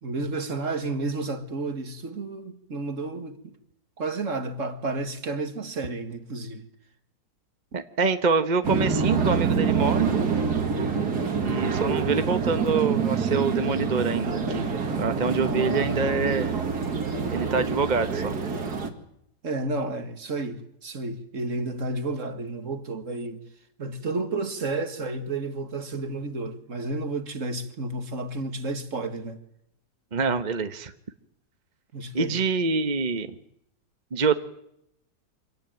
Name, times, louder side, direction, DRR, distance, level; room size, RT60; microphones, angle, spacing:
voice 1, 0.0-3.5 4.0-6.7 15.4-16.1 19.4-23.4 23.8-29.4 31.9-32.4, right 2 dB, 45° right, 2.1 m, -31 dB
voice 2, 7.7-10.2 11.4-14.6 14.9-16.5 17.3-18.4 30.1-30.9 32.1-33.3 34.1-34.3, right 4 dB, 30° right, 1.0 m, -25 dB
sound 1, 8.6-18.9, right 5 dB, 60° right, 2.7 m, -26 dB
25.5 x 18.0 x 9.2 m
omnidirectional pair, 1.9 m